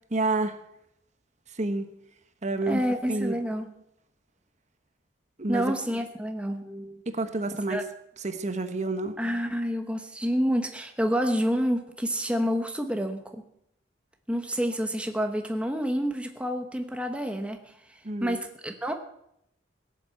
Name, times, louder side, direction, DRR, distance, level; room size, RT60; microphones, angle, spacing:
voice 1, 0.1-0.6 1.5-1.9 2.4-3.3 5.4-5.7 7.1-7.8 8.2-9.1 18.0-18.4, right 2 dB, 40° right, 9 dB, 1.1 m, -29 dB
voice 2, 2.7-3.7 5.5-7.0 7.7-7.8 9.2-13.4 14.3-18.9, equal, 5° right, 5 dB, 1.0 m, -28 dB
17.0 x 7.6 x 8.2 m, 0.78 s
head